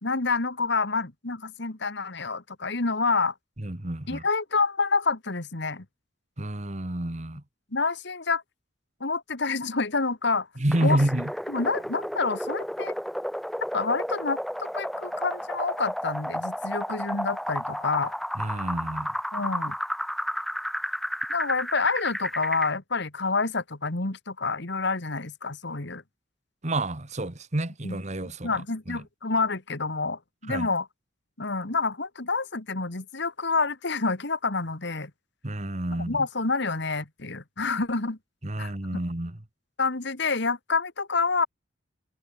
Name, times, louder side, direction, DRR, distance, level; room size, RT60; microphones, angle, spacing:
voice 1, 0.0-3.3 4.1-5.9 7.7-8.4 9.0-10.5 10.8-11.0 11.5-13.0 13.7-18.1 19.3-19.8 21.3-26.0 27.8-28.0 28.4-30.9 31.4-35.1 36.1-38.2 38.6-38.7 39.8-41.5, left 4 dB, 60° left, 1.9 m, -28 dB
voice 2, 3.6-4.2 6.4-7.4 10.6-11.3 18.3-19.1 26.6-29.0 30.5-30.7 35.4-36.2 38.4-39.4, right 1 dB, 35° right, 1.6 m, -29 dB
sound 1, 10.7-22.7, equal, ahead, 2.6 m, -32 dB
head